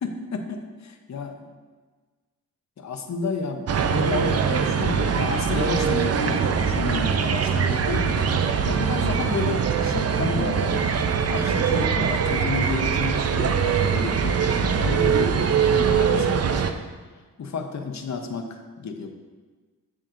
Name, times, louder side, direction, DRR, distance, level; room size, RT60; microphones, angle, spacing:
voice 1, 0.0-1.5 2.8-8.3 8.7-10.9 11.3-15.3 15.6-16.7 17.4-19.1, left 4 dB, 50° left, 5 dB, 0.8 m, -31 dB
sound 1, 3.7-16.7, right 6 dB, 45° right, 0.5 m, -22 dB
7.4 x 7.2 x 2.6 m, 1.4 s
cardioid pair, 80°, 35 cm